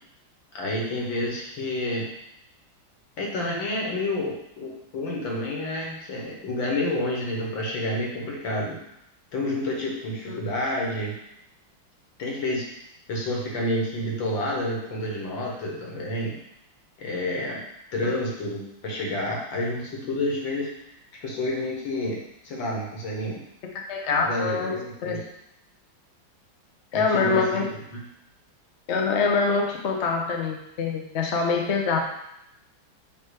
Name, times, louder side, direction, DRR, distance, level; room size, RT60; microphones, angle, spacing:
voice 1, 0.5-2.1 3.2-8.8 9.3-11.2 12.2-12.7 13.1-16.3 17.0-17.6 17.9-20.7 21.2-23.4 24.2-25.2 26.9-27.6 27.9-28.0, left 1 dB, 70° left, -2 dB, 2.1 m, -29 dB
voice 2, 23.9-24.7 25.0-25.2 26.9-27.6 28.9-32.0, left 4 dB, 50° left, 1 dB, 0.8 m, -24 dB
7.6 x 3.3 x 4.8 m, 0.80 s
omnidirectional pair, 2.2 m